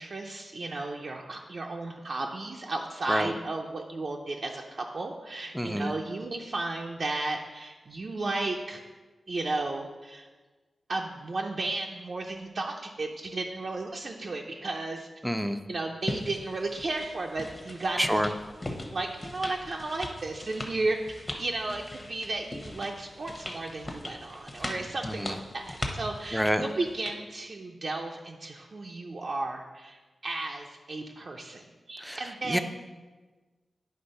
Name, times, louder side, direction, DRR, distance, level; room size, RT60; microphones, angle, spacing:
voice 1, 0.0-8.8 9.3-10.3 10.9-15.1 15.7-18.1 18.9-21.0 21.4-32.6, right 2 dB, 55° right, 0 dB, 0.5 m, -34 dB
voice 2, 5.5-5.9 15.2-15.6 18.0-18.3 25.1-25.4 26.3-26.6 32.0-32.2 32.5-32.6, equal, 5° right, 9 dB, 0.4 m, -27 dB
sound 1, 16.0-27.2, left 1 dB, 20° left, 0.9 m, -40 dB
9.5 x 3.4 x 5.4 m, 1.3 s
wide cardioid pair, 105°, 0 cm